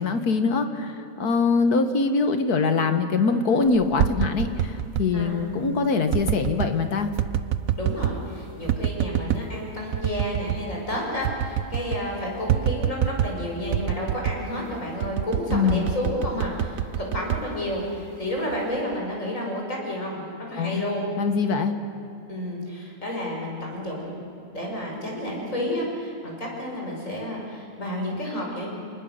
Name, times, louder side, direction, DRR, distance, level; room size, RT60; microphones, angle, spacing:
voice 1, 0.0-7.1 15.5-15.9 20.6-20.8 21.2-21.7, left 4 dB, 80° left, 7 dB, 2.0 m, -23 dB
sound 1, 3.7-5.1 6.1-6.7 7.2-8.2 8.7-9.5 9.9-10.6 10.9-11.0 11.2-12.1 12.5-13.4 13.7-14.5 15.0-18.1 18.5-18.9, right 10 dB, 65° right, 1.1 m, -26 dB
voice 2, 7.8-21.1 22.3-28.7, left 1 dB, 55° left, -2 dB, 6.3 m, -31 dB
28.5 x 20.0 x 6.6 m, 2.8 s
omnidirectional pair, 1.6 m